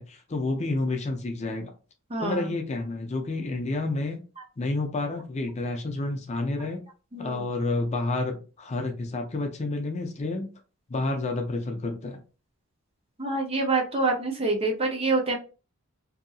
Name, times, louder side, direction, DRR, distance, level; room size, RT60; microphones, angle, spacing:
voice 1, 0.0-1.7 2.2-4.2 4.6-6.8 7.2-10.5 10.9-12.2, left 2 dB, 30° left, 3 dB, 0.4 m, -29 dB
voice 2, 2.1-2.5 7.1-7.4 13.2-15.4, right 3 dB, 25° right, 2 dB, 0.5 m, -26 dB
2.7 x 2.5 x 2.3 m, 0.34 s
head